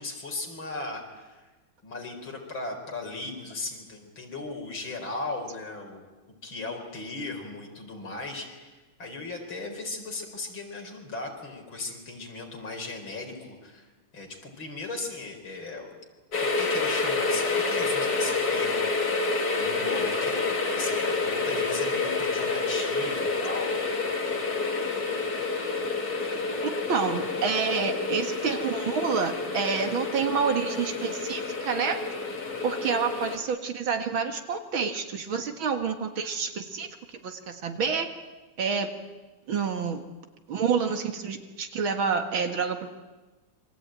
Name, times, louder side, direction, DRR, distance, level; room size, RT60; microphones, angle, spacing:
voice 1, 0.0-1.5 1.8-6.0 6.4-15.9 16.4-19.2 19.6-23.8, left 3 dB, 60° left, 3 dB, 5.1 m, -37 dB
sound 1, 16.3-33.4, left 3 dB, 45° left, 2.9 m, -28 dB
voice 2, 26.6-32.0 32.6-36.9 37.2-38.1 38.6-38.9 39.5-40.0 40.5-42.9, right 6 dB, 65° right, 7 dB, 2.5 m, -28 dB
27.5 x 24.0 x 9.0 m, 1.2 s
omnidirectional pair, 2.4 m